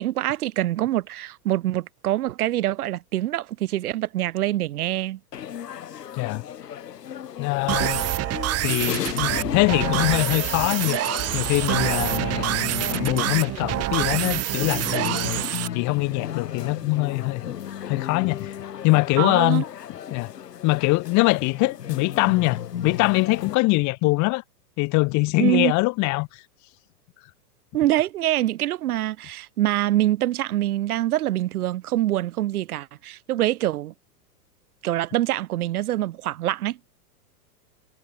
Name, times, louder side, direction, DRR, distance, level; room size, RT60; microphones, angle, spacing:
voice 1, 0.0-5.2 19.2-19.6 25.4-25.7 27.7-33.9 34.8-36.8, right 14 dB, 65° right, 1.8 m, -25 dB
sound 1, 5.3-23.6, left 9 dB, 80° left, 7.5 m, -34 dB
voice 2, 7.4-8.0 8.6-11.0 11.3-17.5 17.9-18.6 18.8-19.6 20.1-20.3 20.6-24.4 24.8-26.4, left 25 dB, 35° left, 2.0 m, -23 dB
sound 2, 7.7-15.7, right 15 dB, 30° right, 3.6 m, -26 dB
hypercardioid pair, 125°, 47 cm